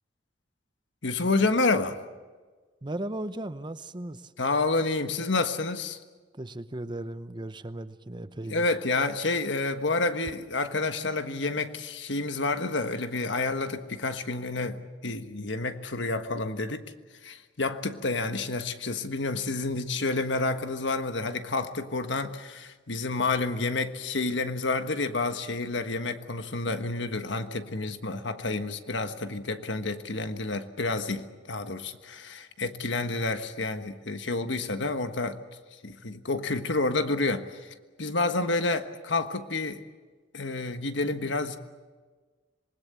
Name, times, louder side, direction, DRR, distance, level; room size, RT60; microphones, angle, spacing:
voice 1, 1.0-2.0 4.4-6.0 8.5-16.9 17.2-35.4 35.8-39.8 40.3-41.6, left 3 dB, 75° left, 8 dB, 1.4 m, -29 dB
voice 2, 2.8-4.3 6.3-8.7, right 1 dB, 25° right, 12 dB, 0.8 m, -36 dB
26.5 x 20.5 x 8.3 m, 1.4 s
head